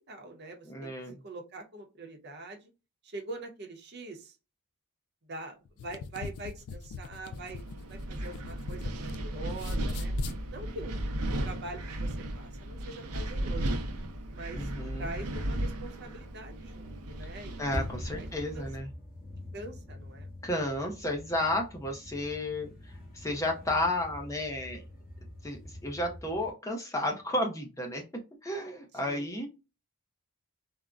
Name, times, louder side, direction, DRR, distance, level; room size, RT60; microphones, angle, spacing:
voice 1, 0.0-0.9 1.2-2.7 3.0-4.4 5.3-10.1 10.5-10.9 11.4-13.7 14.3-17.7 18.1-18.7 19.5-20.3 29.0-29.4, right 2 dB, 50° right, 3 dB, 0.7 m, -44 dB
voice 2, 0.7-1.2 14.5-15.1 17.6-18.9 20.4-24.8 25.4-28.0 28.4-29.5, left 1 dB, 15° left, 2 dB, 0.5 m, -32 dB
sound 1, 5.6-9.2 9.5-10.4, left 5 dB, 75° left, 0.3 m, -41 dB
Wind, 7.3-18.8, right 1 dB, 90° right, 0.6 m, -35 dB
sound 2, 17.7-26.5, left 1 dB, 35° left, 1.0 m, -44 dB
3.6 x 2.0 x 2.3 m, 0.27 s
head